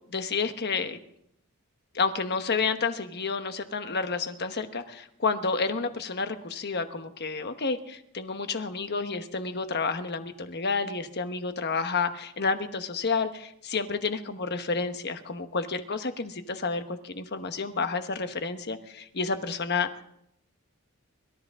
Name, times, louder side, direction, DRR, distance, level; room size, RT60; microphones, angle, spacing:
voice 1, 0.1-1.0 1.9-20.0, left 4 dB, 50° left, 8 dB, 1.1 m, -30 dB
23.5 x 13.0 x 3.7 m, 0.74 s
head